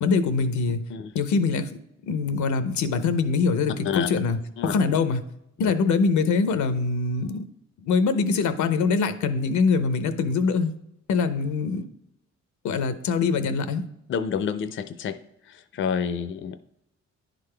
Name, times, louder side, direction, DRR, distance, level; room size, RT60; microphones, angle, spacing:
voice 1, 0.0-0.8 1.1-1.7 2.0-5.2 5.6-7.4 7.8-10.7 11.1-11.9 12.6-13.8, left 4 dB, 85° left, 10 dB, 0.7 m, -23 dB
voice 2, 14.1-15.1 15.5-16.6, left 7 dB, 45° left, 10 dB, 0.4 m, -28 dB
10.5 x 3.9 x 3.3 m, 0.82 s
cardioid pair, 100°, 29 cm